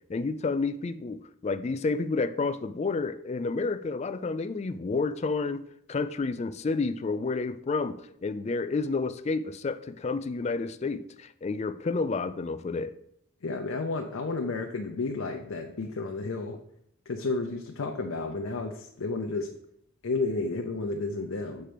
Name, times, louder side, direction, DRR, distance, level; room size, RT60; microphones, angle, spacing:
voice 1, 0.1-5.6 5.9-8.0 8.2-12.9, left 3 dB, 30° left, 12 dB, 0.3 m, -30 dB
voice 2, 13.4-16.6 17.1-19.5 20.0-21.7, left 3 dB, 85° left, 2 dB, 0.7 m, -32 dB
6.6 x 4.4 x 5.1 m, 0.73 s
head